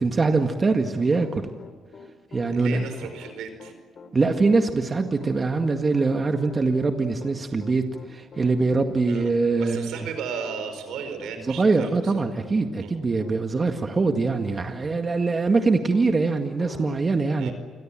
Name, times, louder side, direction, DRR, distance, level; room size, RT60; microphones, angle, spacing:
voice 1, 0.0-1.5 2.3-2.9 4.1-9.9 11.5-17.5, right 3 dB, 35° right, 5 dB, 1.9 m, -23 dB
Piano, 0.9-16.1 16.6-17.0, left 4 dB, 50° left, 3.1 m, -46 dB
voice 2, 2.4-3.7 9.1-9.3 9.6-12.1 12.8-12.9 17.4-17.5, right 6 dB, 85° right, 8 dB, 4.9 m, -35 dB
28.5 x 22.5 x 7.6 m, 1.5 s
cardioid pair, 90°, 0 cm